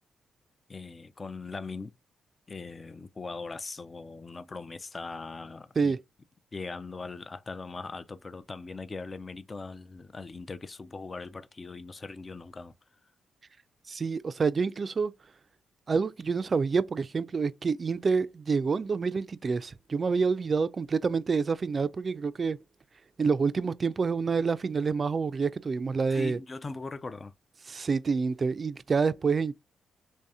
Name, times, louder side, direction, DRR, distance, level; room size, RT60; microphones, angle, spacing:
voice 1, 0.7-1.9 2.5-5.9 6.5-12.7 26.1-27.3, left 3 dB, 35° left, 0.4 m, -40 dB
voice 2, 13.9-15.1 15.9-22.6 23.2-26.4 27.7-29.5, right 5 dB, 45° right, 0.3 m, -27 dB
3.3 x 2.7 x 3.5 m
cardioid pair, 70°, 0 cm